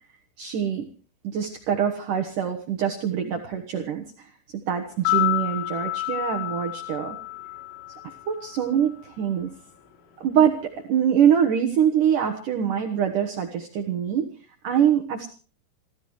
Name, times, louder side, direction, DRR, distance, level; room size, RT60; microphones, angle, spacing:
voice 1, 0.4-0.9 1.2-4.3 4.7-7.2 8.3-9.5 10.2-14.3 14.6-15.3, right 9 dB, 80° right, 3 dB, 1.9 m, -24 dB
sound 1, 4.9-9.1 9.3-9.4, left 17 dB, 75° left, 5.4 m, -29 dB
27.5 x 15.0 x 3.2 m, 0.37 s
omnidirectional pair, 5.7 m